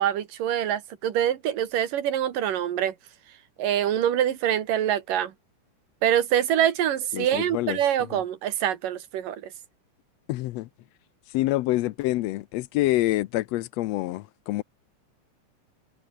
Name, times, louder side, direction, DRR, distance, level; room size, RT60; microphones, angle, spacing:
voice 1, 0.0-3.0 3.6-5.3 6.0-9.5, right 10 dB, 90° right, 3.4 m, -25 dB
voice 2, 7.1-7.8 10.3-10.7 11.3-14.6, left 17 dB, 85° left, 1.4 m, -26 dB
omnidirectional pair, 3.8 m